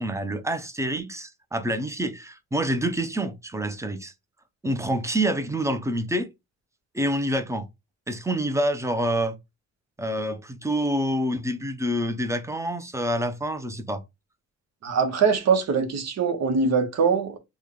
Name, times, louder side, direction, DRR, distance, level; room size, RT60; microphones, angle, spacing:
voice 1, 0.0-4.1 4.6-6.3 6.9-7.7 8.1-9.4 10.0-14.0, right 1 dB, 10° right, 0.6 m, -27 dB
voice 2, 14.8-17.4, right 5 dB, 60° right, 1.0 m, -22 dB
3.1 x 2.2 x 3.7 m
cardioid pair, 90°, 30 cm